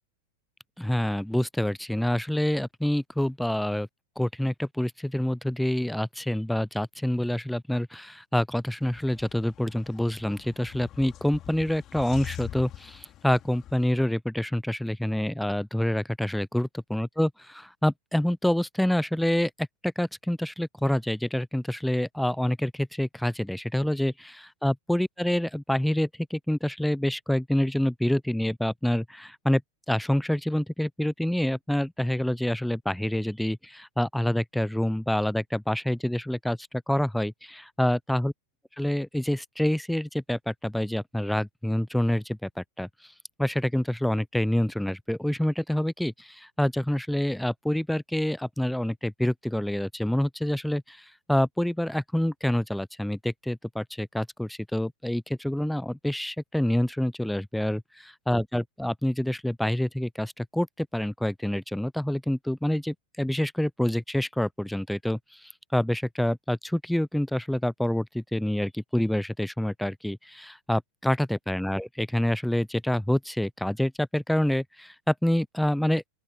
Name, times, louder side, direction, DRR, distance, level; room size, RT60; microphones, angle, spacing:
voice 1, 0.8-3.9 4.2-17.3 17.8-29.6 29.9-38.3 38.8-43.1 43.4-76.0, left 1 dB, ahead, 0.7 m, -27 dB
sound 1, 8.8-13.9, left 12 dB, 30° left, 3.6 m, -44 dB
open air
figure-of-eight pair, 90°, 0 cm